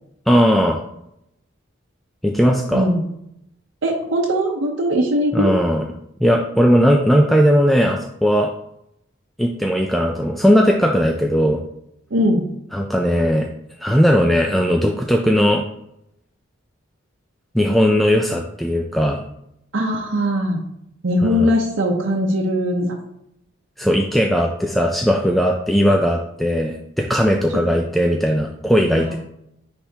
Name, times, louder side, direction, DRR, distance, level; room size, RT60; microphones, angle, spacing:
voice 1, 0.3-0.8 2.2-2.9 5.3-5.8 6.2-8.5 9.4-11.6 12.7-13.5 13.8-15.6 17.5-19.2 21.2-21.5 23.8-29.1, equal, ahead, 1 dB, 0.3 m, -17 dB
voice 2, 2.7-3.1 3.8-5.5 12.1-12.5 19.7-20.6 21.0-23.0 28.9-29.2, equal, 70° right, -2 dB, 0.7 m, -20 dB
10.0 x 3.4 x 2.8 m, 0.78 s
head